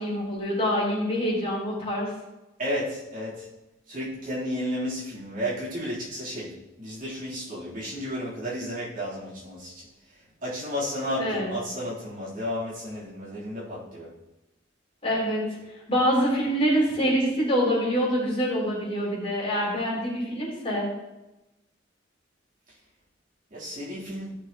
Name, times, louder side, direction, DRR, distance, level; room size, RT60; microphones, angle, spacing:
voice 1, 0.0-2.1 11.2-11.6 15.0-15.4 15.9-20.9, equal, 30° left, -6 dB, 3.6 m, -25 dB
voice 2, 2.6-3.5 3.9-9.9 10.4-14.1 23.5-24.4, equal, 45° right, -7 dB, 3.3 m, -32 dB
15.5 x 6.2 x 3.0 m, 1.0 s
head